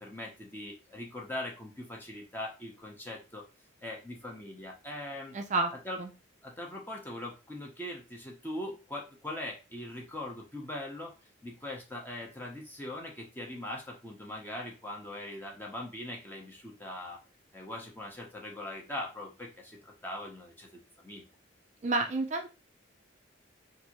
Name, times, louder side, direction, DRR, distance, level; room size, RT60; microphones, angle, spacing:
voice 1, 0.0-3.5 3.8-5.4 5.8-6.0 6.4-11.1 11.4-17.2 17.5-21.3, left 1 dB, 10° left, -1 dB, 0.7 m, -41 dB
voice 2, 5.3-5.7 6.0-6.1 21.8-22.5, right 3 dB, 35° right, 4 dB, 0.3 m, -29 dB
3.3 x 2.6 x 2.9 m, 0.30 s
head